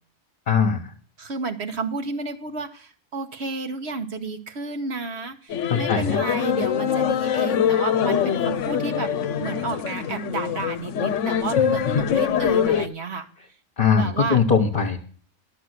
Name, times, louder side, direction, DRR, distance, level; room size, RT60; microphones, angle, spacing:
voice 1, 0.5-0.9 5.7-6.2 11.9-12.0 13.8-15.0, left 6 dB, 40° left, 1 dB, 1.3 m, -20 dB
voice 2, 1.2-13.3 13.9-14.4, right 3 dB, 60° right, 7 dB, 1.4 m, -31 dB
sound 1, 5.5-12.9, left 8 dB, 80° left, 1.1 m, -24 dB
11.5 x 6.7 x 8.0 m, 0.43 s
omnidirectional pair, 1.3 m